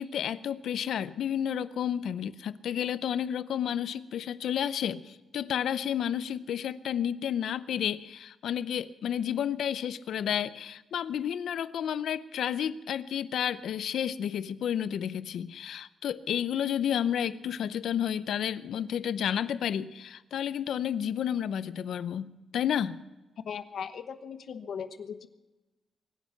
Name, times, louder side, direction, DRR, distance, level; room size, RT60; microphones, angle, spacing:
voice 1, 0.0-23.0, left 9 dB, 85° left, 15 dB, 0.6 m, -31 dB
voice 2, 23.5-25.3, left 7 dB, 70° left, 11 dB, 1.0 m, -38 dB
23.5 x 10.0 x 5.9 m, 1.1 s
wide cardioid pair, 150°, 0 cm